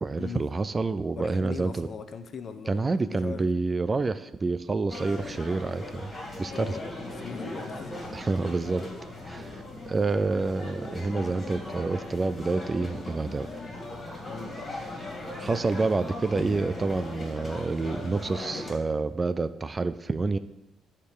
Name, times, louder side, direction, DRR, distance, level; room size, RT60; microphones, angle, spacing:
voice 1, 0.0-1.9 2.7-6.1 6.4-6.8 8.1-8.9 9.2-13.5 15.4-20.4, right 3 dB, 25° right, 13 dB, 0.3 m, -28 dB
voice 2, 1.2-3.5 6.5-8.0 14.3-14.7, left 5 dB, 45° left, 8 dB, 0.8 m, -39 dB
sound 1, 4.9-18.7, left 1 dB, 25° left, 2.8 m, -38 dB
10.0 x 4.5 x 6.7 m, 0.97 s
cardioid pair, 110°, 0 cm